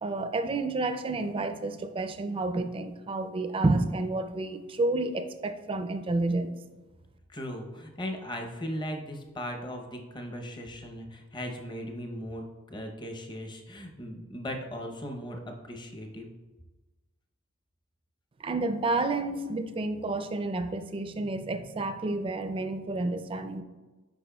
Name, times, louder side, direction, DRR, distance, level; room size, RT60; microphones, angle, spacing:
voice 1, 0.0-6.5 18.4-23.6, right 2 dB, 25° right, 8 dB, 0.4 m, -30 dB
voice 2, 7.3-16.3, equal, 20° left, 3 dB, 0.7 m, -38 dB
8.4 x 5.4 x 2.3 m, 1.2 s
head